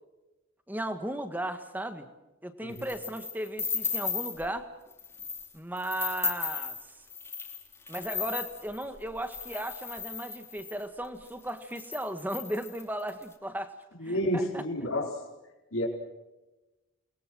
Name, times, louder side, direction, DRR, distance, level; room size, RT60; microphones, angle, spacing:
voice 1, 0.7-2.1 2.4-4.7 5.5-6.8 7.9-13.7 14.0-14.6, right 1 dB, 10° right, 8 dB, 1.6 m, -36 dB
sound 1, 2.8-4.5 4.9-5.5 5.8-10.8 11.4-11.5 11.7-13.2, left 5 dB, 10° left, 3.0 m, -35 dB
voice 2, 14.0-15.1 15.7-15.9, equal, 85° left, -1 dB, 4.5 m, -30 dB
29.5 x 21.5 x 6.3 m, 1.1 s
head